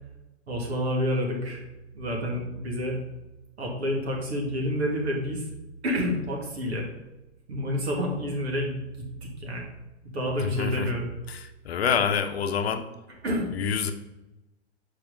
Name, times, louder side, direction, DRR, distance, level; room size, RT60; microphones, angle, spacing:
voice 1, 0.5-1.7 1.9-3.0 3.6-5.5 5.8-6.9 7.5-9.7 10.1-11.1 13.2-13.5, equal, 70° right, 0 dB, 2.1 m, -29 dB
voice 2, 10.4-10.9 11.3-12.8 13.5-13.9, left 7 dB, 65° left, 8 dB, 0.8 m, -27 dB
7.1 x 4.8 x 3.8 m, 1.0 s
figure-of-eight pair, 105°, 34 cm